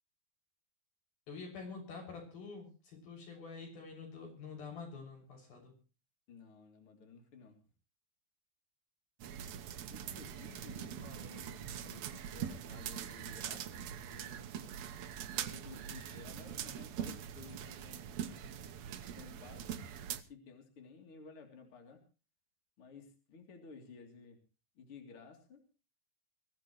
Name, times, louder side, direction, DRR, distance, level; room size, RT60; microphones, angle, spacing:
voice 1, 1.3-5.7, left 4 dB, 80° left, 2 dB, 8.4 m, -47 dB
voice 2, 6.3-7.6 9.6-14.5 15.2-18.1 19.2-19.7 20.3-22.0 22.8-24.4 24.8-25.6, left 4 dB, 40° left, 3 dB, 3.8 m, -55 dB
sound 1, 9.2-20.2, right 9 dB, 65° right, 1.8 m, -43 dB
22.5 x 16.5 x 3.1 m, 0.35 s
omnidirectional pair, 4.1 m